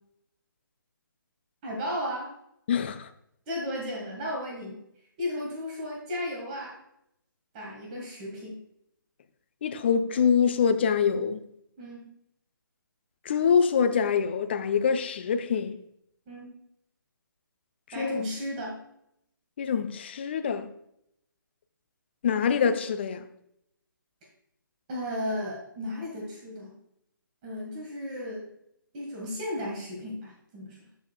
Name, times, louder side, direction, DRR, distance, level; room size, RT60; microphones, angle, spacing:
voice 1, 1.6-2.3 3.5-4.8 5.2-6.8 7.5-8.6 11.8-12.1 16.3-16.6 17.9-18.8 24.9-26.7 27.4-28.4 28.9-30.8, left 1 dB, 20° right, 1.9 m, -34 dB
voice 2, 2.7-3.1 9.6-11.4 13.3-15.8 18.0-18.2 19.6-20.7 22.2-23.2, left 6 dB, 30° left, 0.5 m, -25 dB
13.0 x 5.0 x 2.4 m
figure-of-eight pair, 145°, 12 cm